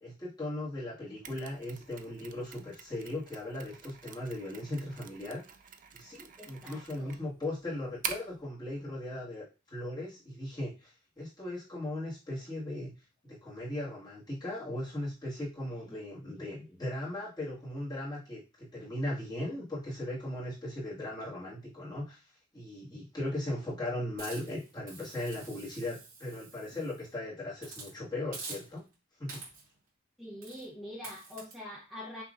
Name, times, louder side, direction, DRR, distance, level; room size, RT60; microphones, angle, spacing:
voice 1, 0.0-5.4 5.9-12.9 13.2-22.2 22.5-28.8 29.2-29.4, left 1 dB, 20° left, -7 dB, 1.8 m, -38 dB
Mechanisms, 1.2-8.4, right 7 dB, 40° right, 0.4 m, -45 dB
voice 2, 6.4-7.2 15.9-16.0 16.3-16.5 30.2-32.2, left 1 dB, ahead, -5 dB, 0.8 m, -45 dB
Hiss, 24.2-27.1 27.6-27.9 28.3-28.9 29.3-29.8 30.4-30.7 31.0-31.5, right 4 dB, 80° right, 2.4 m, -47 dB
5.5 x 3.0 x 2.5 m, 0.32 s
head